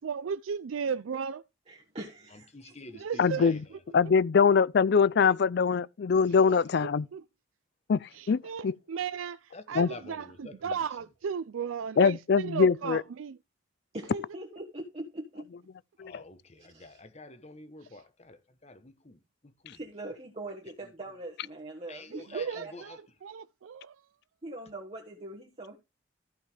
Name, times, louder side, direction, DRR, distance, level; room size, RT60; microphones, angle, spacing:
voice 1, 0.0-1.4 2.9-3.5 6.5-6.6 7.1-7.2 8.1-13.4 22.1-23.9, right 6 dB, 90° right, 0.4 m, -35 dB
voice 2, 1.7-2.7 13.9-15.5 16.6-17.0 19.7-22.7 24.4-25.8, right 1 dB, 30° right, 1.3 m, -42 dB
voice 3, 2.3-3.8 9.5-10.8 16.0-19.8 21.9-23.0, left 3 dB, 35° left, 1.1 m, -49 dB
voice 4, 3.2-3.6 3.9-7.1 7.9-8.8 9.7-9.9 12.0-13.0 16.0-16.2, left 5 dB, 55° left, 0.4 m, -23 dB
14.5 x 5.7 x 3.3 m
head